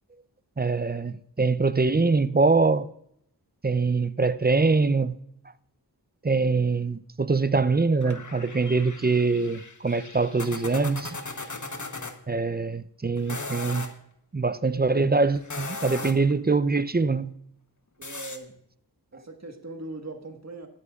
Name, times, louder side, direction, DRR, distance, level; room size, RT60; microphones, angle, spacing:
voice 1, 0.6-2.9 3.6-5.1 6.2-11.2 12.3-13.9 14.3-17.3, right 4 dB, 25° right, 0.5 m, -23 dB
sound 1, 8.0-12.1 13.2-13.9 15.3-16.3 18.0-18.4, left 3 dB, 45° left, 1.2 m, -37 dB
voice 2, 18.0-18.6 19.1-20.7, right 2 dB, 40° right, 1.5 m, -40 dB
20.5 x 8.3 x 2.4 m
wide cardioid pair, 45°, 42 cm